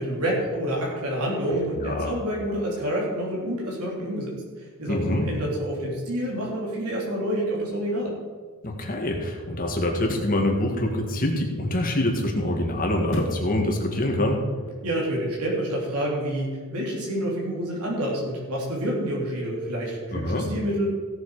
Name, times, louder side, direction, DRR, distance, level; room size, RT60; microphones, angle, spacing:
voice 1, 0.0-4.3 4.6-8.1 14.8-20.9, right 1 dB, 85° right, -4 dB, 3.5 m, -28 dB
voice 2, 1.7-2.1 4.9-5.2 8.6-14.4 20.1-20.5, left 1 dB, 40° left, 1 dB, 2.0 m, -25 dB
sound 1, 8.1-8.3 10.0-10.5 13.1-13.5 14.0-14.1, left 1 dB, 55° left, 1.2 m, -32 dB
16.5 x 7.4 x 5.0 m, 1.5 s
head